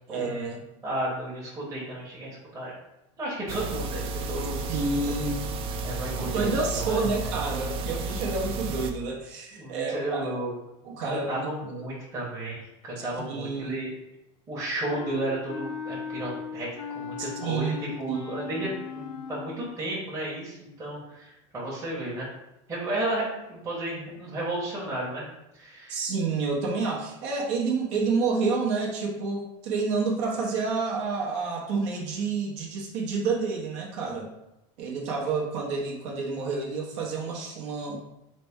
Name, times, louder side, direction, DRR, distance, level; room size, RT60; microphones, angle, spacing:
voice 1, 0.1-0.6 4.7-5.4 6.3-10.4 10.8-11.5 13.2-13.8 17.2-17.8 18.1-18.3 25.9-34.3 34.8-38.0, right 4 dB, 70° right, -2 dB, 0.9 m, -29 dB
voice 2, 0.8-2.7 3.2-4.8 5.8-6.5 6.8-7.0 9.5-10.5 11.0-13.9 14.5-16.7 16.9-22.3 22.7-25.2 25.5-26.0, right 1 dB, 20° right, -7 dB, 1.0 m, -33 dB
sound 1, 3.5-8.9, right 3 dB, 35° right, 0.4 m, -32 dB
Wind instrument woodwind instrument, 14.9-19.7, left 6 dB, 85° left, 0.4 m, -38 dB
4.0 x 2.1 x 3.5 m, 0.90 s
supercardioid pair, 140°, 15 cm